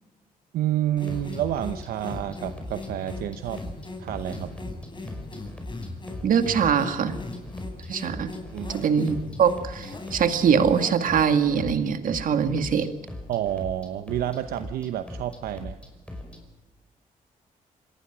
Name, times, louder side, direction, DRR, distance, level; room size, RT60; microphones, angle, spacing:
voice 1, 0.5-3.6 4.0-4.5 8.5-8.9 13.3-15.8, right 12 dB, 90° right, 10 dB, 0.9 m, -29 dB
sound 1, 0.9-16.4, left 1 dB, 5° left, 5.6 m, -41 dB
sound 2, 1.0-11.6, left 3 dB, 30° left, 6.6 m, -39 dB
voice 2, 6.2-7.2 7.9-8.3 8.7-12.9, right 7 dB, 65° right, 8 dB, 2.1 m, -23 dB
26.5 x 18.5 x 6.2 m, 1.2 s
cardioid pair, 85°, 15 cm